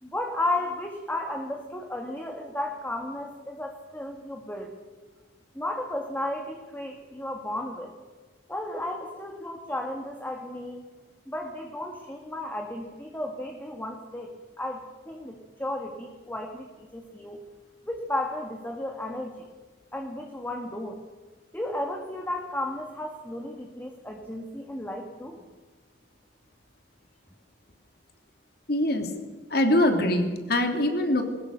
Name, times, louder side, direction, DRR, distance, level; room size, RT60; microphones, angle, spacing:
voice 1, 0.0-4.7 5.6-7.9 8.5-10.9 11.3-17.4 17.9-19.5 19.9-21.0 21.5-25.4, left 1 dB, 10° left, 2 dB, 2.0 m, -34 dB
voice 2, 28.7-29.1 29.5-31.2, left 1 dB, 60° left, 5 dB, 3.1 m, -23 dB
22.0 x 20.0 x 6.7 m, 1.4 s
head